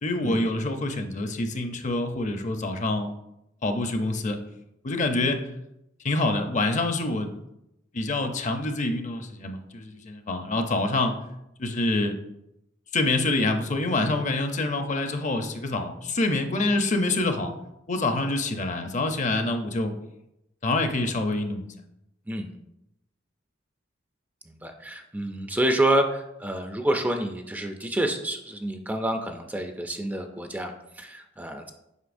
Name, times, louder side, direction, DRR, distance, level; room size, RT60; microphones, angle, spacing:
voice 1, 0.0-3.1 3.6-4.4 4.8-5.4 6.0-7.3 7.9-11.2 11.6-12.2 12.9-17.5 17.9-19.9 20.6-21.7, left 2 dB, 40° left, 6 dB, 0.6 m, -26 dB
voice 2, 24.5-31.7, right 1 dB, 10° right, 5 dB, 0.4 m, -28 dB
8.1 x 5.4 x 2.6 m, 0.85 s
head